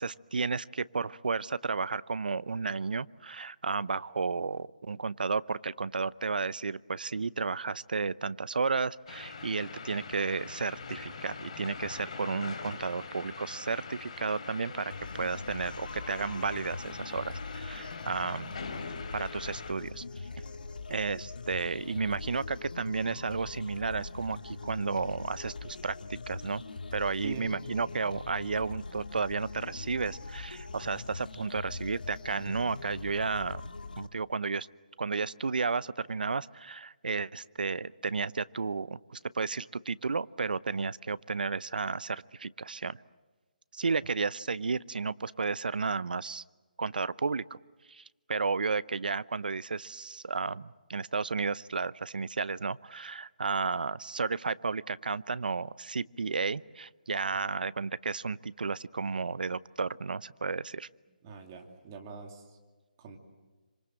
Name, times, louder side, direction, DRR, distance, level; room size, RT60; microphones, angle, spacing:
voice 1, 0.0-18.6 19.1-20.0 20.9-26.6 26.9-33.6 34.0-34.7 35.0-43.0 43.7-46.4 46.8-47.6 47.9-60.9, right 4 dB, 80° right, 18 dB, 0.8 m, -33 dB
sound 1, 9.1-19.7, left 4 dB, 45° left, 3.3 m, -43 dB
sound 2, 14.9-34.1, left 3 dB, 75° left, 2.0 m, -42 dB
voice 2, 61.2-62.6 63.0-63.2, right 6 dB, 20° right, 3 dB, 2.6 m, -44 dB
27.5 x 26.0 x 7.7 m, 1.3 s
hypercardioid pair, 170°, 5 cm